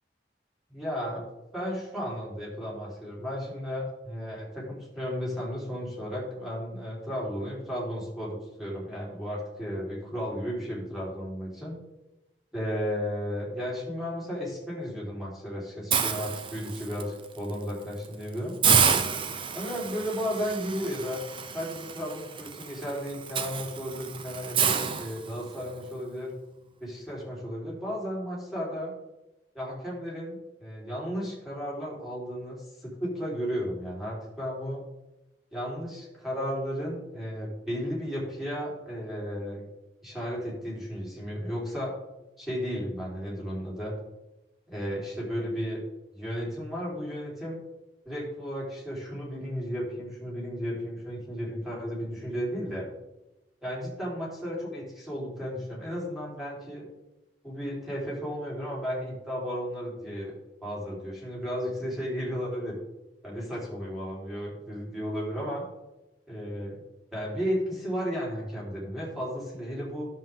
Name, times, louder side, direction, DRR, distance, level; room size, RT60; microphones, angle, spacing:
voice 1, 0.7-1.3 1.5-11.8 12.5-18.5 19.5-21.2 21.5-26.3 26.8-28.9 29.5-34.8 35.5-39.7 40.0-41.9 42.4-43.9 44.7-45.8 46.1-47.6 48.1-52.9 53.6-56.8 57.4-60.3 60.6-62.8 63.2-65.6 66.3-66.8 67.1-70.1, equal, ahead, -7 dB, 3.8 m, -34 dB
Hiss, 15.9-17.0 17.5-17.7 18.0-18.1 18.6-25.7, right 6 dB, 30° right, 0.6 m, -29 dB
11.0 x 7.5 x 3.7 m, 0.97 s
head